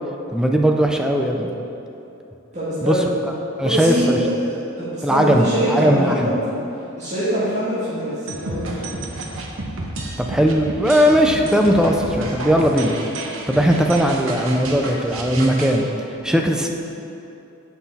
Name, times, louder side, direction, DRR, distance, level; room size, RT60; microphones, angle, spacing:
voice 1, 0.3-1.5 2.8-3.0 3.2-3.3 3.6-4.2 5.0-6.2 10.2-13.0 13.5-15.9 16.2-16.7, equal, 5° right, 2 dB, 0.5 m, -18 dB
voice 2, 2.5-3.1 3.6-6.3 7.0-8.9, equal, 35° right, -13 dB, 1.9 m, -23 dB
sound 1, 8.3-15.8, right 2 dB, 85° right, 0.9 m, -31 dB
7.7 x 5.9 x 4.2 m, 2.8 s
head